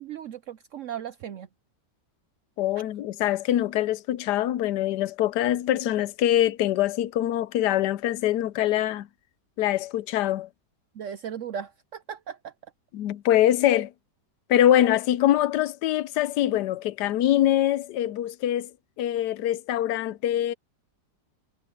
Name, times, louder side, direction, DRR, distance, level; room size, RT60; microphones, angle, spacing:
voice 1, 0.0-1.5 10.9-12.5, right 8 dB, 65° right, 0.7 m, -37 dB
voice 2, 2.6-9.1 9.6-10.5 12.9-13.9 14.5-18.7 19.0-20.5, left 12 dB, 80° left, 1.2 m, -24 dB
omnidirectional pair, 1.8 m